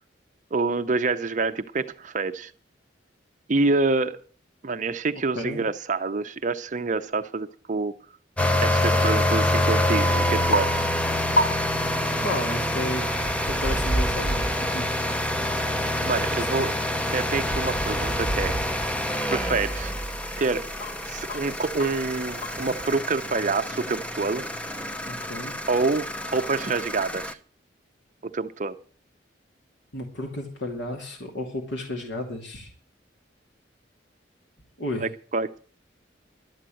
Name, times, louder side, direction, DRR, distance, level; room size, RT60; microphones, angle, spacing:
voice 1, 0.5-2.5 3.5-4.2 4.6-7.9 8.6-10.8 16.1-16.7 17.1-18.5 19.3-19.9 20.4-20.7 21.0-24.4 25.7-27.4 28.3-28.8 35.0-35.6, right 3 dB, 40° right, 9 dB, 0.6 m, -27 dB
sound 1, 8.4-27.3, left 1 dB, 5° left, 0.7 m, -27 dB
sound 2, 8.8-22.9, equal, 35° left, 2.2 m, -33 dB
voice 2, 12.2-13.0 13.4-14.9 16.5-16.6 25.1-25.5 29.9-32.7 34.8-35.1, left 1 dB, 70° left, 1 dB, 2.6 m, -32 dB
12.5 x 8.9 x 7.7 m, 0.43 s
head